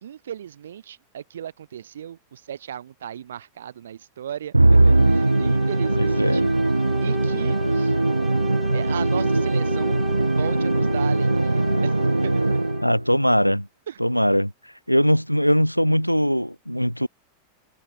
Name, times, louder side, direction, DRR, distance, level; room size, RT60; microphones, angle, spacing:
voice 1, 0.0-6.5 7.0-7.9 8.7-10.0 10.4-12.4 13.9-14.0, right 9 dB, 65° right, 1.5 m, -36 dB
Musical instrument, 4.5-13.1, right 2 dB, 85° right, 0.8 m, -20 dB
sound 1, 4.6-13.0, right 2 dB, 5° right, 1.1 m, -37 dB
voice 2, 5.9-6.5 12.8-13.7 14.0-14.5 14.9-17.1, equal, 90° left, 0.6 m, -21 dB
figure-of-eight pair, 90°, 0 cm